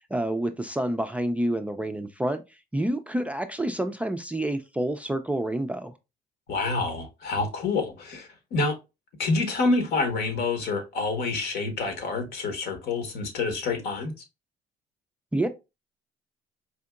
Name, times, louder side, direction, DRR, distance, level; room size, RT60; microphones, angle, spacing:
voice 1, 0.1-2.4 2.7-5.9 15.3-15.5, right 1 dB, 10° right, 0.3 m, -28 dB
voice 2, 6.5-8.8 9.2-14.1, left 3 dB, 70° left, 1.2 m, -27 dB
4.4 x 2.7 x 2.3 m
cardioid pair, 110°, 17 cm